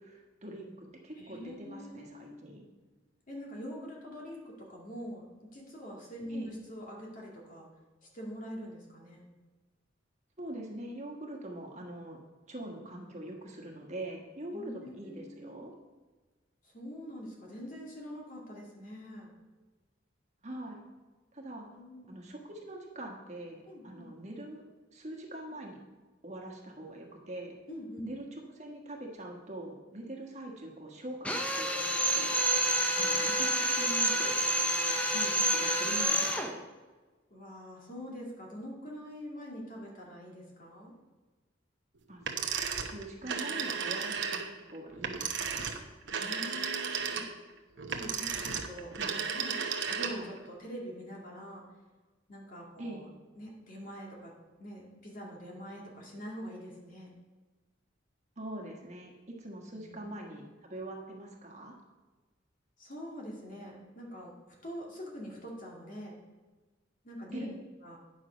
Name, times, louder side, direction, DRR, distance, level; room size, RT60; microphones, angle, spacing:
voice 1, 0.0-2.6 6.3-6.5 10.4-12.2 12.5-15.7 20.4-20.8 21.3-21.7 22.1-24.6 24.9-25.8 26.2-27.6 28.0-32.4 33.0-34.4 35.1-36.7 42.1-42.2 42.7-45.8 48.9-49.2 49.9-50.3 52.8-53.0 58.4-61.7 67.3-67.6, right 1 dB, 35° right, 0 dB, 1.4 m, -43 dB
voice 2, 1.2-2.4 3.3-5.2 5.5-7.7 8.0-9.2 14.5-15.5 16.6-19.3 21.7-22.1 23.7-24.1 27.7-28.0 37.3-40.9 46.1-47.3 47.9-48.9 49.3-49.6 50.0-51.6 52.3-53.1 53.4-54.3 54.6-57.1 59.8-60.0 62.8-66.1 67.0-67.5 67.8-68.0, equal, 45° left, -2 dB, 2.1 m, -44 dB
Drill, 31.2-36.5, equal, 5° left, 0.7 m, -28 dB
sound 1, 42.2-50.4, right 6 dB, 65° right, 0.9 m, -34 dB
9.8 x 6.3 x 5.1 m, 1.3 s
head